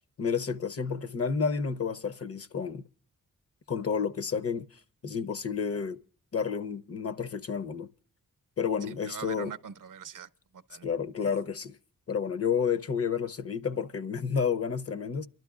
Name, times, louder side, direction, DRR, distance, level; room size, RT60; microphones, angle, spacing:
voice 1, 0.2-2.8 3.7-4.7 5.0-6.0 6.3-7.9 8.6-9.5 10.8-11.7 12.1-15.3, left 6 dB, 45° left, 0.7 m, -30 dB
voice 2, 8.9-10.9 11.3-11.4, right 7 dB, 70° right, 0.7 m, -43 dB
29.5 x 12.0 x 2.4 m
wide cardioid pair, 85°, 33 cm